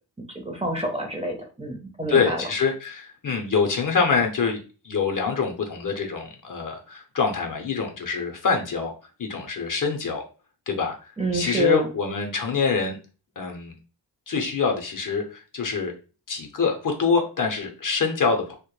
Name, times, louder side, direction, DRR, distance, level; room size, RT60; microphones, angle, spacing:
voice 1, 0.3-2.4 11.2-11.9, equal, 15° right, 1 dB, 0.5 m, -27 dB
voice 2, 2.1-4.6 4.8-8.9 9.2-10.2 10.7-11.0 11.3-13.0 13.4-13.8 14.3-15.9 16.3-18.5, left 5 dB, 45° left, 3 dB, 0.6 m, -25 dB
2.1 x 2.1 x 3.0 m, 0.34 s
cardioid pair, 70°, 44 cm